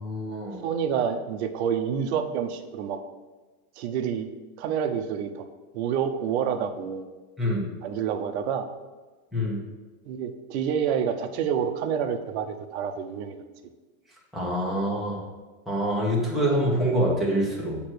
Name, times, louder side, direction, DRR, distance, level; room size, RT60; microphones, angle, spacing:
voice 1, 0.0-0.6 7.4-7.6 9.3-9.6 14.3-15.2 15.7-17.8, equal, ahead, -6 dB, 1.2 m, -25 dB
voice 2, 0.6-3.0 3.8-4.3 4.6-5.4 5.7-7.1 7.8-8.7 10.0-13.4, right 8 dB, 55° right, 7 dB, 0.8 m, -28 dB
8.4 x 3.0 x 6.3 m, 1.3 s
supercardioid pair, 160°, 41 cm